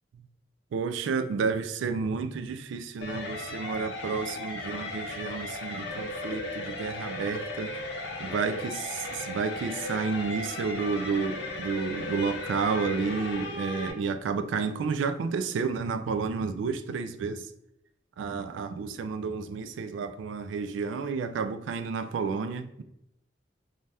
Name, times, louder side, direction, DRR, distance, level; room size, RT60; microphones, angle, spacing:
voice 1, 0.7-7.8 8.2-17.5 18.2-22.8, right 5 dB, 90° right, 0.3 m, -31 dB
sound 1, 3.0-13.9, left 2 dB, 75° left, 0.6 m, -36 dB
2.7 x 2.2 x 3.3 m
head